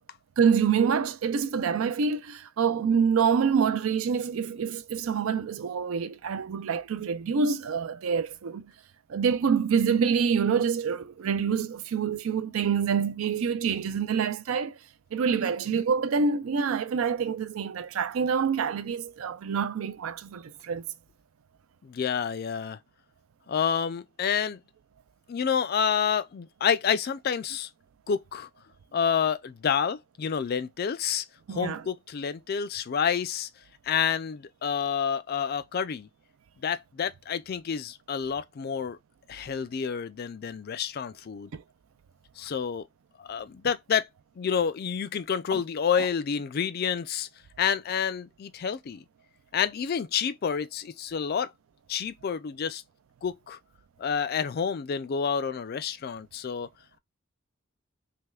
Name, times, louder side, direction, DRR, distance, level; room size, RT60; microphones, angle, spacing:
voice 1, 0.4-8.7 9.1-14.8 15.1-20.8 31.5-31.8 41.5-41.6 45.5-45.6 46.0-46.1, right 6 dB, 75° right, 0.4 m, -26 dB
voice 2, 21.8-22.8 23.5-24.6 25.3-27.7 28.1-28.5 28.9-33.5 33.9-36.1 36.6-39.0 39.3-41.5 42.4-42.9 43.2-44.1 44.4-47.3 47.6-49.0 49.5-51.5 51.9-52.8 53.2-53.6 54.0-56.7, left 7 dB, 45° left, 0.3 m, -29 dB
3.4 x 3.0 x 2.3 m
head